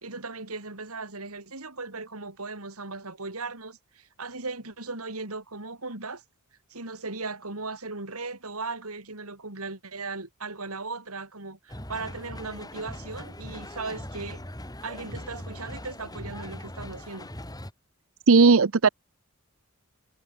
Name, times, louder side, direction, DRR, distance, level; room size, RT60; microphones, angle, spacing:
voice 1, 0.0-6.2 6.7-14.5 14.8-17.3, right 3 dB, 85° right, 4.3 m, -37 dB
sound 1, 11.7-17.7, left 1 dB, 15° left, 6.1 m, -40 dB
voice 2, 18.3-18.9, right 4 dB, 65° right, 0.7 m, -16 dB
head